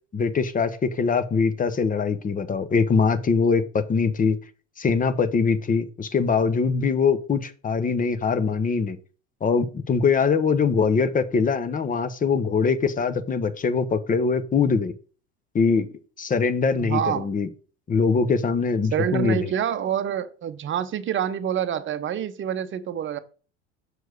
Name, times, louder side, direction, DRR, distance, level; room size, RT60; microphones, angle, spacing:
voice 1, 0.1-4.4 4.8-9.0 9.4-14.9 15.5-15.9 16.2-17.5 17.9-19.5, left 5 dB, 25° left, 0.8 m, -22 dB
voice 2, 16.7-17.3 18.9-23.2, right 9 dB, 35° right, 0.8 m, -27 dB
6.6 x 4.6 x 5.0 m
hypercardioid pair, 80°, 35 cm